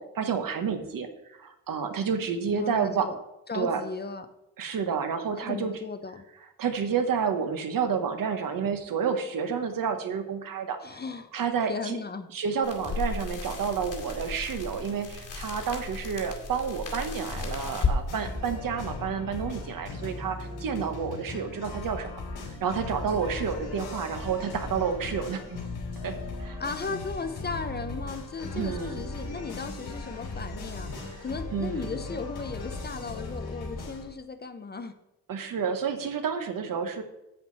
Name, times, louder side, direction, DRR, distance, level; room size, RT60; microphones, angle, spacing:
voice 1, 0.0-3.1 3.5-3.8 4.6-5.7 6.6-11.0 11.3-12.0 12.3-22.1 22.6-25.6 26.0-26.6 28.5-29.0 31.1-31.2 31.5-31.9 35.3-37.0, right 6 dB, 60° right, 7 dB, 1.2 m, -30 dB
voice 2, 2.5-3.1 3.5-4.3 5.3-6.2 10.8-11.3 11.7-12.3 26.6-35.0, left 4 dB, 25° left, 9 dB, 0.6 m, -36 dB
sound 1, 12.6-18.0, left 4 dB, 55° left, 2.2 m, -34 dB
sound 2, 18.1-34.0, left 3 dB, 80° left, 3.1 m, -38 dB
10.0 x 7.4 x 4.1 m, 0.91 s
cardioid pair, 135°, 38 cm